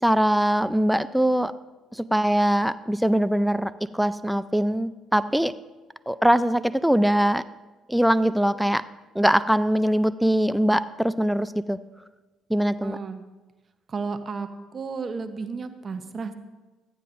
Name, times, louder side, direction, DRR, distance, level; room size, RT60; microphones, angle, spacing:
voice 1, 0.0-1.5 1.9-5.5 6.1-7.4 7.9-8.8 9.1-11.8 12.5-13.0, equal, ahead, 14 dB, 0.4 m, -22 dB
voice 2, 12.8-13.2 13.9-16.3, right 4 dB, 45° right, 9 dB, 0.9 m, -33 dB
14.0 x 9.1 x 2.6 m, 1.2 s
hypercardioid pair, 55°, 0 cm